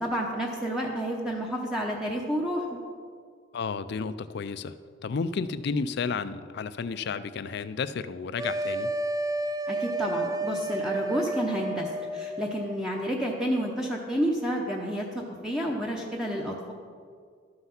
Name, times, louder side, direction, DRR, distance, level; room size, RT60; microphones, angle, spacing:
voice 1, 0.0-2.8 9.7-16.7, equal, 5° right, -2 dB, 0.7 m, -30 dB
voice 2, 3.5-4.7 5.0-8.9, left 5 dB, 60° left, 14 dB, 0.4 m, -32 dB
sound 1, 8.4-12.8, right 1 dB, 20° right, 0.3 m, -31 dB
12.5 x 5.7 x 5.8 m, 2.1 s
head